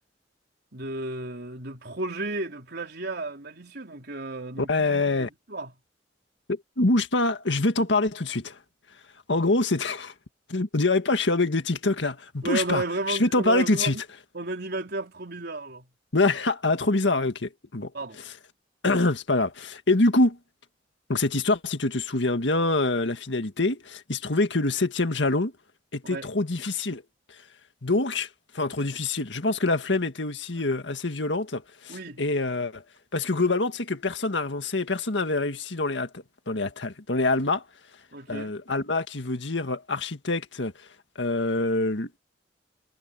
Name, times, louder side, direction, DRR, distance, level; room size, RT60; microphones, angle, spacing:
voice 1, 0.7-5.7 12.4-14.0 14.3-15.9 17.9-18.2 26.0-26.3 31.9-32.2 38.1-38.6, right 2 dB, 65° right, 4.0 m, -33 dB
voice 2, 4.7-5.3 6.5-8.6 9.3-10.1 10.5-14.0 16.1-17.9 18.8-20.4 21.1-25.5 25.9-27.0 27.8-28.3 28.5-32.8 33.1-37.6 38.3-40.7 41.2-42.2, left 2 dB, 90° left, 1.8 m, -25 dB
head